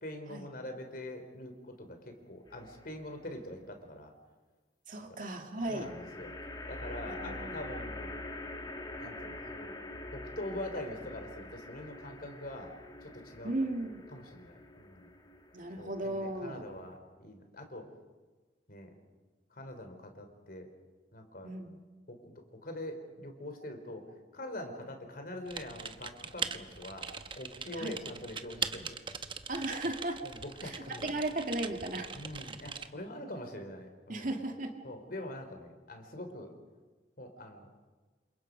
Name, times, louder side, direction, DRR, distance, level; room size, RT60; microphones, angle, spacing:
voice 1, 0.0-4.1 5.0-5.2 5.7-6.4 6.7-8.1 9.0-9.8 10.1-12.7 13.0-13.5 14.1-15.1 15.8-17.8 18.7-18.9 19.5-20.7 21.1-21.5 22.1-24.0 24.3-29.2 30.2-31.1 32.1-34.3 34.8-36.5 37.2-37.7, left 1 dB, 55° left, 6 dB, 3.7 m, -44 dB
sound 1, 2.5-3.1 5.6-17.0, left 2 dB, 25° left, 1.7 m, -45 dB
voice 2, 4.9-5.9 7.1-7.5 13.4-14.0 15.5-16.7 21.4-21.8 27.8-27.9 29.5-30.2 30.6-32.1 34.1-34.7, right 2 dB, 50° right, 4 dB, 2.4 m, -36 dB
Typing, 25.5-32.9, right 6 dB, 30° right, 1.0 m, -41 dB
29.5 x 27.0 x 5.3 m, 1.3 s
head